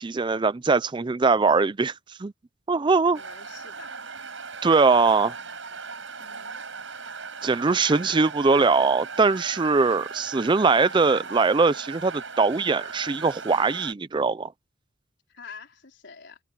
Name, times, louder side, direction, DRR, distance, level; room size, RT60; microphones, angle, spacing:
voice 1, 0.0-2.3 2.7-3.2 4.6-5.3 7.4-14.5, right 4 dB, 25° right, 0.4 m, -21 dB
voice 2, 3.1-4.0 6.2-6.5 15.3-16.4, left 5 dB, 60° left, 4.8 m, -46 dB
sound 1, 3.1-13.9, right 5 dB, 65° right, 7.3 m, -38 dB
head